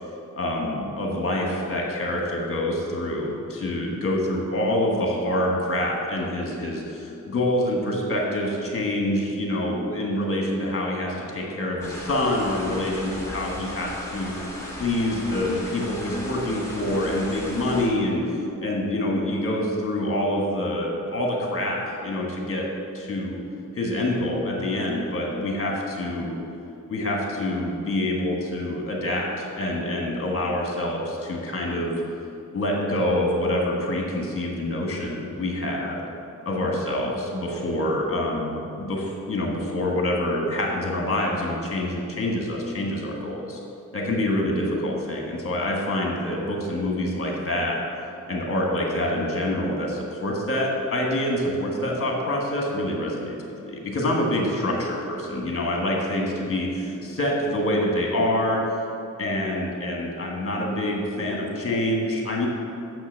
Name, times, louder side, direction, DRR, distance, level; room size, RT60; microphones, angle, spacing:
voice 1, 0.4-22.7 22.9-23.4 23.7-26.4 26.9-32.0 32.5-36.0 36.4-43.6 43.9-47.8 48.3-53.4 53.6-58.6 59.2-62.5, left 1 dB, 40° left, -1 dB, 1.6 m, -26 dB
sound 1, 11.8-17.9, left 1 dB, 10° left, 1.5 m, -36 dB
6.2 x 6.1 x 7.4 m, 2.7 s
wide cardioid pair, 160°, 33 cm